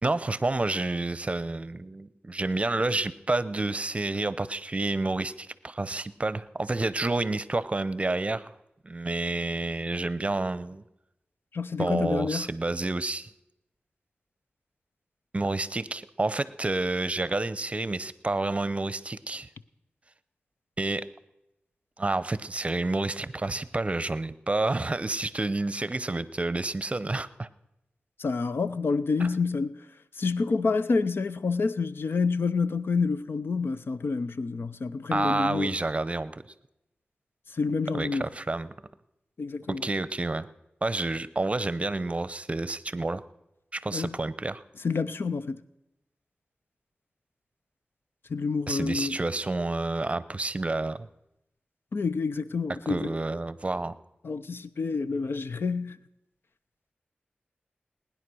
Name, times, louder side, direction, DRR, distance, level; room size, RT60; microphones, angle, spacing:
voice 1, 0.0-8.5 8.8-10.8 11.8-13.3 15.3-19.5 20.8-21.0 22.0-27.5 29.2-29.3 35.1-36.4 37.9-38.7 39.7-40.5 40.8-43.2 43.7-44.6 48.7-51.1 52.9-53.9, right 2 dB, 35° right, 0.7 m, -29 dB
voice 2, 11.5-12.5 28.2-29.8 30.2-35.7 37.5-38.2 39.4-39.8 43.9-44.1 44.8-45.6 48.3-49.2 51.9-53.1 54.2-56.0, left 4 dB, 75° left, 0.6 m, -28 dB
19.5 x 10.0 x 6.2 m
wide cardioid pair, 65°, 4 cm